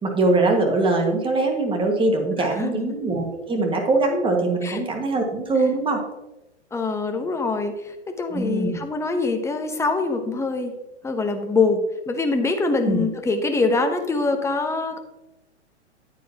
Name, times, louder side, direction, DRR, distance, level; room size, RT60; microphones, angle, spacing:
voice 1, 0.0-6.0 8.3-8.8 12.9-13.0, right 2 dB, 15° right, 2 dB, 1.6 m, -22 dB
voice 2, 2.4-2.9 4.6-4.8 6.7-10.7 11.0-15.0, left 3 dB, 10° left, 6 dB, 0.9 m, -24 dB
9.6 x 9.1 x 2.9 m, 0.97 s
hypercardioid pair, 115°, 35 cm